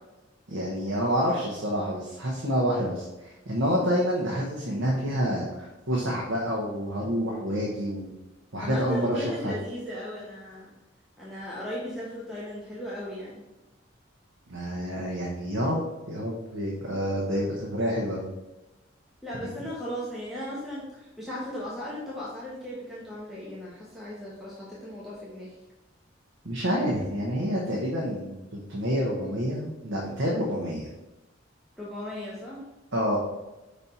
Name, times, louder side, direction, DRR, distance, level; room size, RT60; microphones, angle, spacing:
voice 1, 0.5-8.1 8.5-9.5 14.5-15.8 16.1-18.3 26.4-30.9 32.9-33.2, equal, 75° right, -3 dB, 1.1 m, -28 dB
voice 2, 8.6-10.7 11.2-13.4 19.2-25.5 31.8-32.7, equal, ahead, -7 dB, 1.0 m, -36 dB
5.4 x 4.2 x 4.3 m, 1.0 s
head